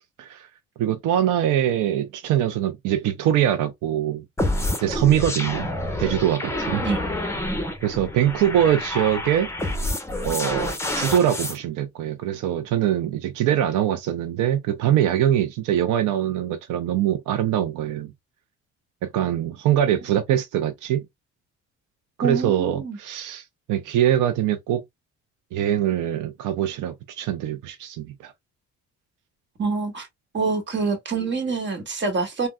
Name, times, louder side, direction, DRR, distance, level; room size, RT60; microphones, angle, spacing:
voice 1, 0.8-4.2 4.8-5.7 6.0-6.8 7.8-9.5 10.2-18.1 19.0-21.0 22.2-24.8 25.5-28.3, right 11 dB, 85° right, 0.5 m, -23 dB
sound 1, 4.4-11.6, left 1 dB, 10° left, 0.8 m, -28 dB
voice 2, 22.2-23.0 29.6-30.1 30.3-32.5, right 4 dB, 40° right, 1.3 m, -26 dB
3.5 x 2.2 x 2.2 m
cardioid pair, 90°, 30 cm